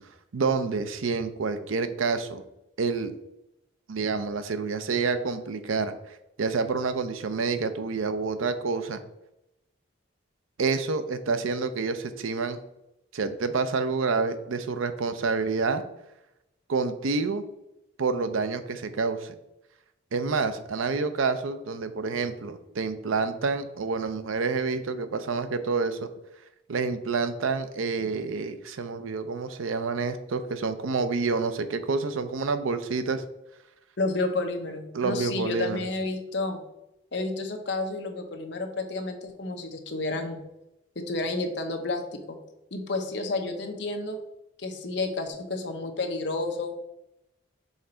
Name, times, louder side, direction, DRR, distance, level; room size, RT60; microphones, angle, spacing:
voice 1, 0.3-2.4 2.8-3.1 3.9-5.9 6.4-9.0 10.6-12.6 13.1-15.8 16.7-17.4 18.0-19.3 20.1-26.1 26.7-33.2 34.9-35.8, right 4 dB, 85° right, 10 dB, 0.6 m, -28 dB
voice 2, 34.0-36.6 37.1-40.4 41.0-42.4 42.7-44.2 44.6-46.8, left 2 dB, 55° left, 4 dB, 0.9 m, -31 dB
5.6 x 3.8 x 4.4 m, 0.89 s
head